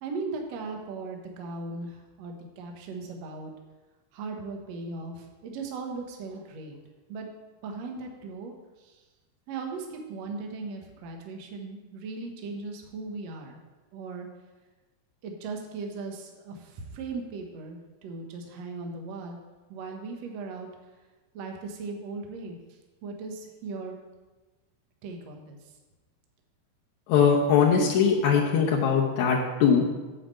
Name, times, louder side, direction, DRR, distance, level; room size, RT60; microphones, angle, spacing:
voice 1, 0.0-3.5 4.1-6.8 7.1-7.3 7.6-9.0 9.5-13.6 13.9-14.3 15.2-19.4 19.7-20.7 21.3-22.6 23.0-24.0 25.0-25.6, right 3 dB, 65° right, 2 dB, 1.7 m, -38 dB
voice 2, 27.1-29.9, left 6 dB, 75° left, -2 dB, 1.7 m, -21 dB
9.4 x 5.0 x 7.5 m, 1.2 s
omnidirectional pair, 4.5 m